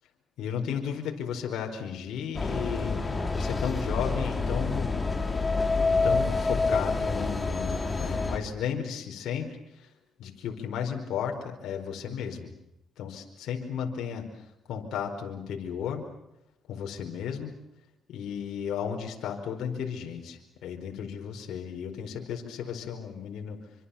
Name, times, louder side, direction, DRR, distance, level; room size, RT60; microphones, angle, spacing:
voice 1, 0.4-5.0 5.9-9.6 10.2-12.5 13.0-14.3 14.7-16.0 16.7-17.5 18.1-23.6, left 7 dB, 80° left, 2 dB, 4.7 m, -34 dB
sound 1, 2.3-8.4, left 3 dB, 20° left, 4.3 m, -27 dB
27.0 x 25.5 x 7.1 m, 0.87 s
cardioid pair, 90°, 0 cm